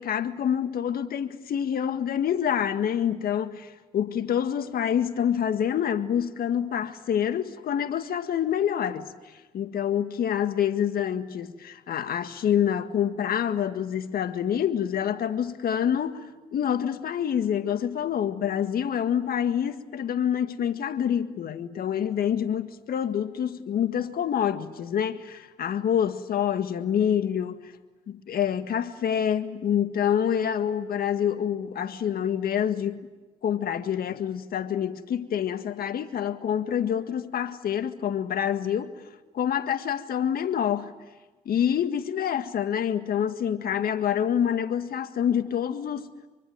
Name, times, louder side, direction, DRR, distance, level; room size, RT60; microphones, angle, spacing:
voice 1, 0.0-9.1 9.5-16.3 16.5-27.7 28.1-33.0 33.4-38.9 39.3-40.9 41.5-46.1, left 9 dB, 60° left, 1.8 m, -27 dB
25.0 x 24.0 x 9.3 m
supercardioid pair, 65°, 17 cm